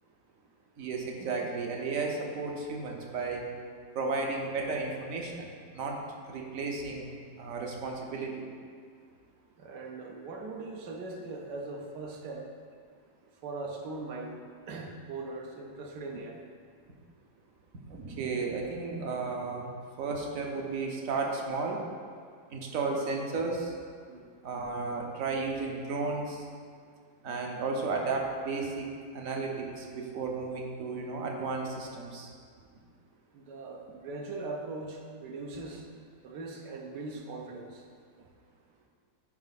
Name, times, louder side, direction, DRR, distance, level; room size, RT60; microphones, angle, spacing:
voice 1, 0.8-3.4 3.9-6.0 6.3-7.1 7.4-8.5 17.9-19.7 20.0-21.8 22.5-23.7 24.4-26.4 27.2-28.9 29.1-32.3, right 4 dB, 55° right, 1 dB, 1.1 m, -33 dB
voice 2, 9.6-12.5 13.4-14.4 14.6-16.4 24.1-24.3 33.3-37.8, right 3 dB, 70° right, 1 dB, 1.4 m, -40 dB
9.6 x 4.7 x 4.1 m, 2.1 s
omnidirectional pair, 2.0 m